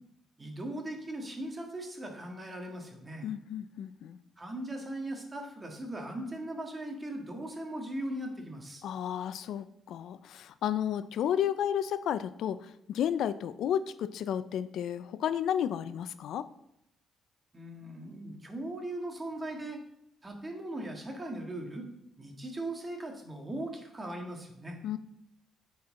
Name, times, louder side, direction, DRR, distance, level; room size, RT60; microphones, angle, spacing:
voice 1, 0.4-3.3 4.4-8.8 17.5-19.8 20.2-21.9 22.2-24.8, right 1 dB, 25° right, 3 dB, 1.6 m, -39 dB
voice 2, 3.2-4.2 8.8-16.5 24.8-25.0, left 9 dB, 75° left, 13 dB, 0.3 m, -32 dB
9.4 x 4.4 x 3.7 m, 0.77 s
cardioid pair, 90°, 0 cm